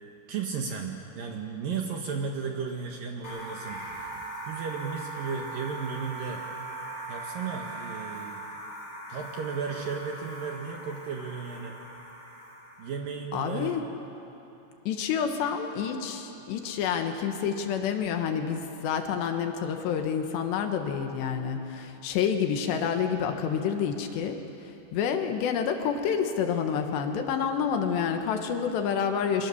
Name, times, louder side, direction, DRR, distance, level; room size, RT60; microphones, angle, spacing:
voice 1, 0.3-4.1 4.4-6.4 7.1-8.4 9.1-11.7 12.8-13.8, right 5 dB, 65° right, 2 dB, 2.5 m, -34 dB
sound 1, 3.2-13.0, right 2 dB, 40° left, 6.1 m, -40 dB
voice 2, 13.3-13.8 14.9-29.5, left 7 dB, 70° left, 5 dB, 3.2 m, -28 dB
26.5 x 23.5 x 7.0 m, 3.0 s
omnidirectional pair, 5.4 m